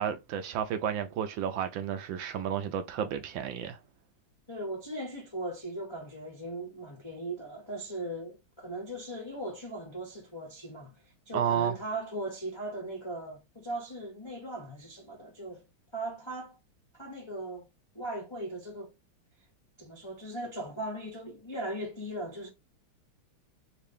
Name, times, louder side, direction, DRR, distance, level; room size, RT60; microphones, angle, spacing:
voice 1, 0.0-3.8 11.3-11.8, right 8 dB, 75° right, 1.2 m, -31 dB
voice 2, 4.5-11.0 11.3-15.6 15.9-16.6 17.0-17.7 17.9-18.9 19.8-22.5, right 1 dB, 45° left, 0.3 m, -38 dB
3.7 x 2.6 x 3.4 m
omnidirectional pair, 2.3 m